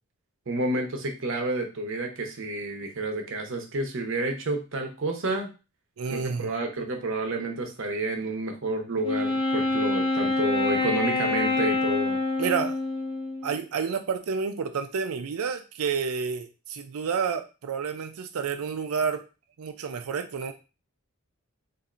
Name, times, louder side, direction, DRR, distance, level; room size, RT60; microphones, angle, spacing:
voice 1, 0.5-5.5 6.1-12.2, right 2 dB, 60° right, 3 dB, 0.8 m, -30 dB
voice 2, 6.0-6.5 12.4-12.8 13.4-19.2 19.6-20.5, right 6 dB, 85° right, 7 dB, 0.4 m, -29 dB
Wind instrument woodwind instrument, 9.0-13.6, left 3 dB, 20° left, 0.6 m, -26 dB
4.2 x 2.6 x 2.5 m, 0.30 s
head